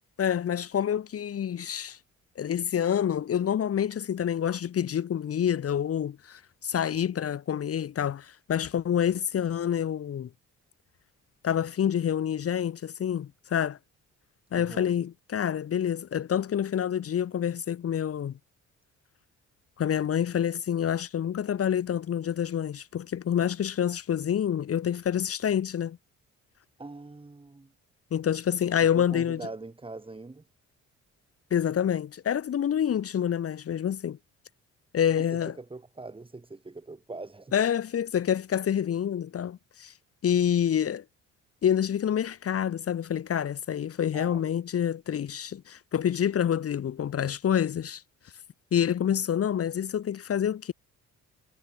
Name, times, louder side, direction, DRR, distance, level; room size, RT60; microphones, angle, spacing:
voice 1, 0.2-2.0 2.4-10.3 11.4-13.8 14.5-18.4 19.8-26.0 28.1-29.5 31.5-34.2 34.9-35.6 37.5-39.9 40.2-41.0 41.6-48.0 48.7-50.7, left 9 dB, 50° left, 1.2 m, -27 dB
voice 2, 14.5-14.9 26.8-27.7 28.9-30.5 35.1-37.5 44.1-44.5, right 3 dB, 15° right, 2.8 m, -42 dB
cardioid pair, 90°, 30 cm